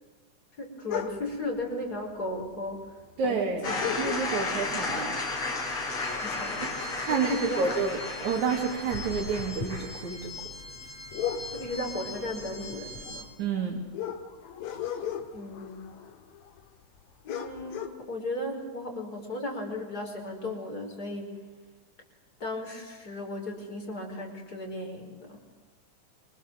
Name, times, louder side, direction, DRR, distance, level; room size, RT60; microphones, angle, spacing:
voice 1, 0.6-3.8 6.1-6.7 7.1-7.8 11.5-13.3 15.3-15.9 17.2-21.4 22.4-25.4, left 1 dB, 30° left, 2 dB, 5.8 m, -36 dB
sound 1, 0.9-1.5 2.5-2.6 2.8-2.9 3.8-4.7 5.1-5.4 5.7-7.3 7.7-7.9 8.3-16.7 17.0-17.1 17.3-17.9, left 9 dB, 70° left, 3.1 m, -37 dB
voice 2, 3.2-5.2 6.6-10.3 13.4-13.8, right 5 dB, 70° right, 0 dB, 4.0 m, -30 dB
sound 2, 3.6-13.2, left 3 dB, 55° left, 5.7 m, -34 dB
28.0 x 25.0 x 7.8 m, 1.3 s
omnidirectional pair, 3.5 m